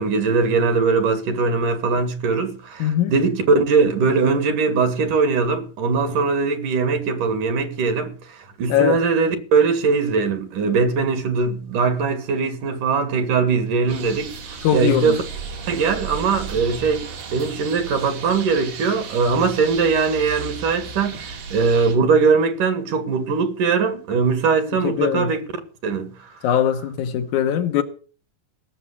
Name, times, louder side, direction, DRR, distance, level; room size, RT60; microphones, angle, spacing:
voice 1, 0.0-15.2 15.7-25.4 25.8-26.1, right 4 dB, 70° right, 3.4 m, -21 dB
voice 2, 2.8-3.1 8.7-9.0 14.6-15.2 24.8-25.3 26.4-27.8, left 9 dB, 70° left, 2.3 m, -20 dB
sound 1, 13.9-22.0, right 4 dB, 90° right, 4.2 m, -35 dB
17.5 x 7.3 x 7.2 m
omnidirectional pair, 3.9 m